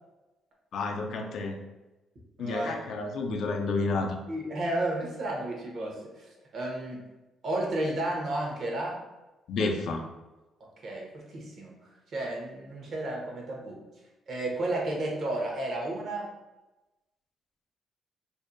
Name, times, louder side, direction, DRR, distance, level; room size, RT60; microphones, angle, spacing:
voice 1, 0.7-1.6 2.4-4.2 9.5-10.0, left 3 dB, 70° left, 3 dB, 0.4 m, -30 dB
voice 2, 2.4-2.8 4.3-6.0 6.5-7.0 7.4-9.0 10.8-11.7 12.1-13.8 14.3-16.3, right 1 dB, 55° right, -1 dB, 0.8 m, -32 dB
2.6 x 2.1 x 2.5 m, 1.1 s
cardioid pair, 90°, 0 cm